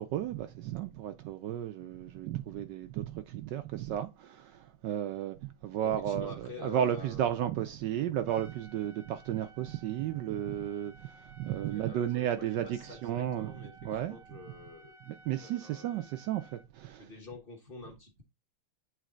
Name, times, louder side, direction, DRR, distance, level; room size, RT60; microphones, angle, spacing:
voice 1, 0.0-14.4 15.1-17.1, right 11 dB, 80° right, 1.0 m, -34 dB
voice 2, 5.8-7.4 11.7-14.9 15.4-16.1 17.0-18.2, left 3 dB, 35° left, 1.1 m, -48 dB
Trumpet, 8.2-16.7, right 2 dB, 55° right, 1.0 m, -57 dB
8.3 x 3.3 x 3.8 m
omnidirectional pair, 2.4 m